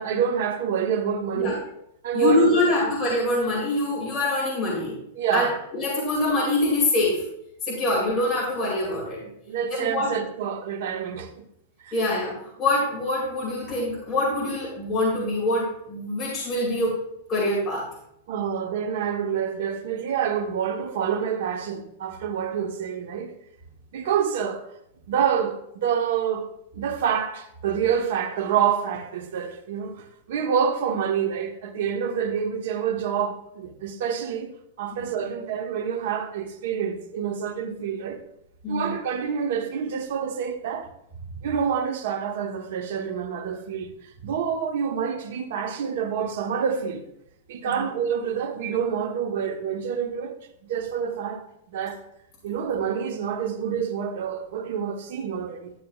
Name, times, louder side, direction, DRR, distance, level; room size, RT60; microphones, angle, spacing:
voice 1, 0.0-1.7 2.0-2.9 5.1-5.6 9.2-11.4 11.8-12.0 18.3-23.3 23.9-24.7 25.1-34.5 34.8-38.2 38.7-40.9 41.4-43.9 44.2-47.0 47.5-50.4 50.6-52.0 52.4-55.7, right 7 dB, 60° right, 1.0 m, -27 dB
voice 2, 2.1-5.0 5.3-5.5 5.7-7.2 7.6-9.2 9.8-10.1 11.9-17.0 17.3-17.9 34.9-35.0 38.6-38.9 47.6-47.8, left 2 dB, 15° left, 2.3 m, -24 dB
11.0 x 8.3 x 2.4 m
supercardioid pair, 165°, 0 cm